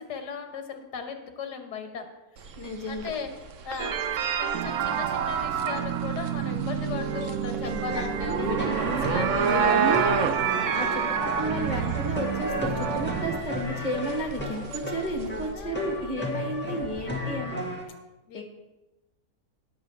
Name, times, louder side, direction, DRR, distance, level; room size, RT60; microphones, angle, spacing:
voice 1, 0.0-2.1 2.3-2.5 2.9-3.3 3.6-3.9 4.4-10.1 10.7-11.1 15.5-15.8 18.3-18.4, left 5 dB, 90° left, 6 dB, 1.7 m, -37 dB
sound 1, 2.4-15.5, right 7 dB, 60° right, 1.0 m, -31 dB
voice 2, 2.6-3.1 7.6-8.8 9.4-10.0 10.5-17.6 18.3-18.4, equal, 25° left, 2 dB, 1.5 m, -33 dB
sound 2, 3.8-13.4, right 8 dB, 75° right, 1.2 m, -29 dB
sound 3, 8.6-17.8, left 1 dB, 5° left, 1.7 m, -33 dB
18.5 x 7.2 x 3.3 m, 1.1 s
omnidirectional pair, 1.7 m